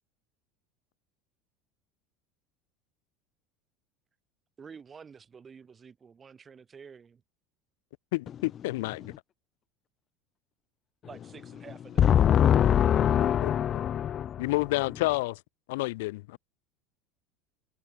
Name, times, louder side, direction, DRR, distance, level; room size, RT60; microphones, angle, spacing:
voice 1, 4.6-7.2 11.0-12.3, right 6 dB, 15° right, 5.2 m, -49 dB
voice 2, 8.1-9.1 13.4-13.5 14.4-15.4 15.7-16.4, left 21 dB, 80° left, 1.5 m, -29 dB
voice 3, 12.0-14.5, left 10 dB, 25° left, 0.6 m, -23 dB
cardioid pair, 170°, 0 cm